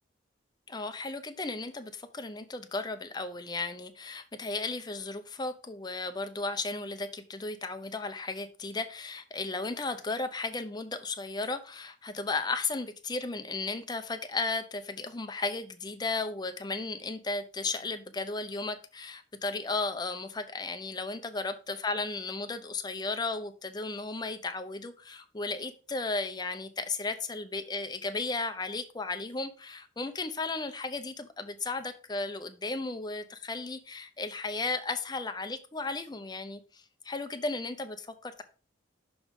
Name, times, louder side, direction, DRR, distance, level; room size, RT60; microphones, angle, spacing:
voice 1, 0.7-38.4, left 3 dB, 25° left, 0.6 m, -35 dB
6.1 x 3.6 x 5.3 m
head